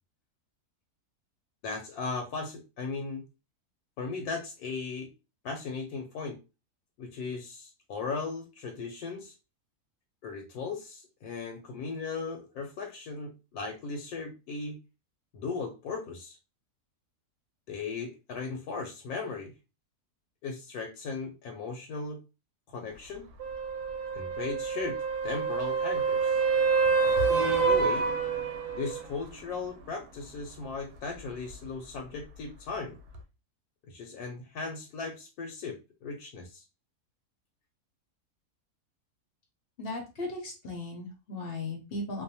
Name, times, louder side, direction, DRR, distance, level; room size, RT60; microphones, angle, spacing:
voice 1, 1.6-3.2 4.0-5.1 5.4-6.4 7.0-9.4 10.2-14.8 15.3-16.4 17.7-19.5 20.4-22.2 22.7-23.3 24.1-25.0 25.2-26.4 27.2-28.1 28.7-33.0 33.9-36.6, left 4 dB, 75° left, 3 dB, 1.0 m, -37 dB
sound 1, 23.4-29.1 33.1-33.2, right 5 dB, 75° right, 1.0 m, -27 dB
voice 2, 39.8-42.2, left 2 dB, 55° left, 1 dB, 0.7 m, -37 dB
2.6 x 2.1 x 2.7 m, 0.28 s
omnidirectional pair, 1.7 m